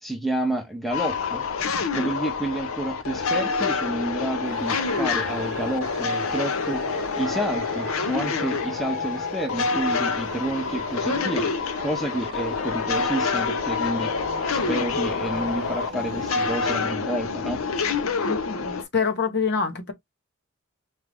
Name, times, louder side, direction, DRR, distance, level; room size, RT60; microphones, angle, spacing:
voice 1, 0.0-1.5 1.9-6.8 7.2-11.5 11.8-14.1 14.5-17.6, right 1 dB, ahead, 0.6 m, -29 dB
sound 1, 0.9-18.8, left 5 dB, 75° left, 0.7 m, -27 dB
sound 2, 4.4-16.7, right 4 dB, 50° right, 0.7 m, -39 dB
voice 2, 18.2-19.9, left 5 dB, 55° left, 1.1 m, -26 dB
4.5 x 2.5 x 3.4 m
head